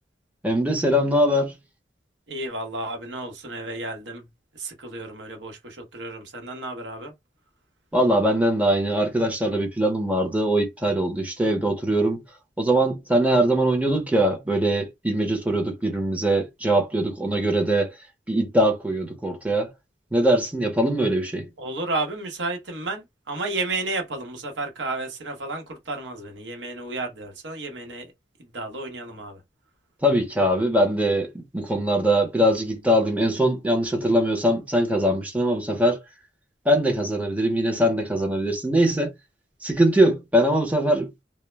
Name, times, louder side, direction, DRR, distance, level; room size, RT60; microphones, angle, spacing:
voice 1, 0.4-1.5 7.9-12.2 12.6-17.9 18.3-19.7 20.1-21.5 30.0-36.0 36.7-39.1 39.6-41.1, right 1 dB, 10° right, 0.6 m, -22 dB
voice 2, 2.3-4.2 4.6-7.1 21.6-28.1 28.5-29.4, right 2 dB, 90° right, 0.9 m, -32 dB
2.1 x 2.0 x 3.1 m
head